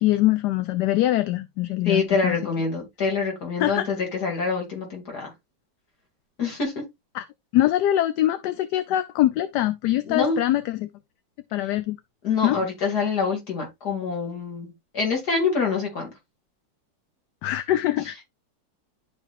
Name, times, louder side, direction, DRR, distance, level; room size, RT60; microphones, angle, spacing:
voice 1, 0.0-2.4 3.6-3.9 7.1-7.2 7.5-10.9 11.5-12.0 12.4-12.6 17.4-18.2, left 14 dB, 70° left, 1.1 m, -23 dB
voice 2, 1.8-5.3 6.4-6.8 10.0-10.4 12.2-16.1, left 5 dB, 55° left, 3.2 m, -26 dB
11.5 x 4.4 x 2.5 m
omnidirectional pair, 2.0 m